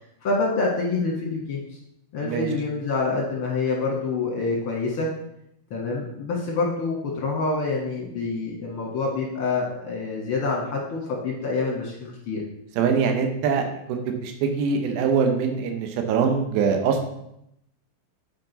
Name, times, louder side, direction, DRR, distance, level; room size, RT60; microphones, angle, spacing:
voice 1, 0.2-1.6 2.1-5.1 5.7-12.4, left 3 dB, 60° left, -2 dB, 1.4 m, -26 dB
voice 2, 12.8-17.0, right 6 dB, 85° right, 4 dB, 2.8 m, -23 dB
9.5 x 4.7 x 4.0 m, 0.78 s
omnidirectional pair, 4.3 m